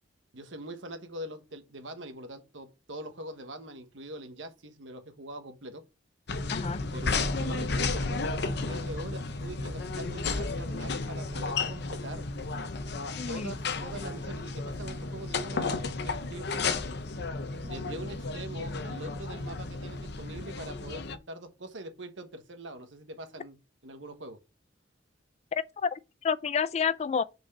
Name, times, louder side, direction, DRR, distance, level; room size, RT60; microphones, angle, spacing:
voice 1, 0.3-5.8 6.9-12.2 13.3-16.5 17.6-24.4, right 1 dB, 80° right, 1.2 m, -43 dB
sound 1, 6.3-21.2, left 3 dB, 60° left, 0.7 m, -33 dB
voice 2, 6.5-6.8 13.2-13.5 25.5-27.2, left 6 dB, 35° left, 0.3 m, -30 dB
5.3 x 4.6 x 5.7 m
head